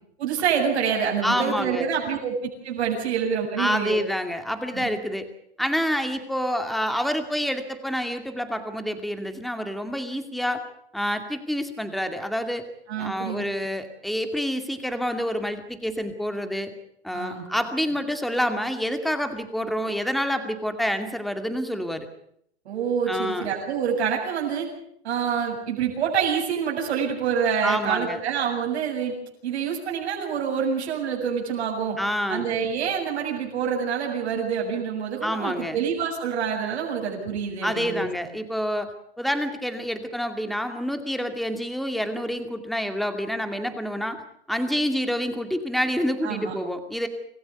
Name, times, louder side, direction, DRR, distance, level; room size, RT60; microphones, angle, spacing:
voice 1, 0.2-4.0 4.7-4.9 12.9-13.4 17.1-17.5 22.6-24.7 25.0-29.1 29.4-32.0 32.3-38.1 46.2-46.5, right 7 dB, 75° right, 0 dB, 7.9 m, -27 dB
voice 2, 1.2-1.9 3.6-5.3 5.6-10.6 10.9-12.7 13.0-16.7 17.0-22.1 23.1-23.5 27.6-28.2 32.0-32.5 35.2-35.8 37.6-38.9 39.2-44.2 44.5-47.1, equal, ahead, 7 dB, 2.3 m, -27 dB
26.0 x 15.0 x 8.2 m, 0.70 s
hypercardioid pair, 125°, 33 cm